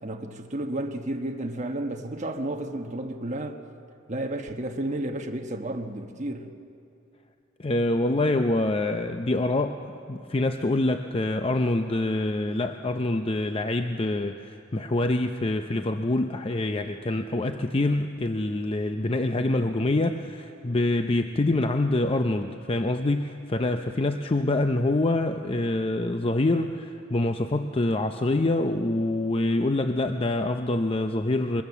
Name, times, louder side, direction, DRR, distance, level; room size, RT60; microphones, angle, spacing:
voice 1, 0.0-3.7 4.1-6.5, right 1 dB, 35° right, 1.2 m, -32 dB
voice 2, 7.6-31.6, left 2 dB, 30° left, 0.6 m, -26 dB
23.5 x 21.5 x 7.2 m
head